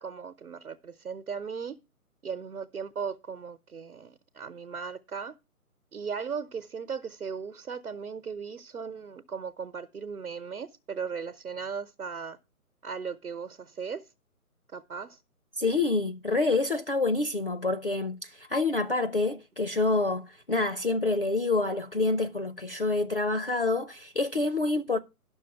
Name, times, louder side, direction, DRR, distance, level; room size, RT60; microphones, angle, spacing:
voice 1, 0.0-1.8 2.2-5.3 5.9-12.4 12.8-14.1 14.7-15.2, right 6 dB, 70° right, 0.9 m, -37 dB
voice 2, 15.6-25.0, left 3 dB, 40° left, 0.5 m, -27 dB
11.0 x 6.2 x 5.7 m
figure-of-eight pair, 145°, 45 cm